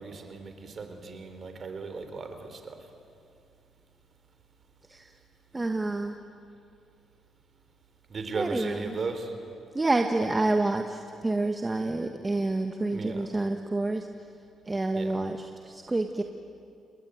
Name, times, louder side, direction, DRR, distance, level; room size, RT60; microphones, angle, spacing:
voice 1, 0.0-2.8 8.1-9.3 12.9-13.3 14.9-15.2, right 4 dB, 45° right, 7 dB, 4.0 m, -36 dB
voice 2, 5.5-6.1 8.3-8.8 9.7-11.0 11.2-14.0 14.7-15.5 15.9-16.2, right 2 dB, 20° right, 5 dB, 1.5 m, -27 dB
29.5 x 20.5 x 9.4 m, 2.5 s
cardioid pair, 90°, 0 cm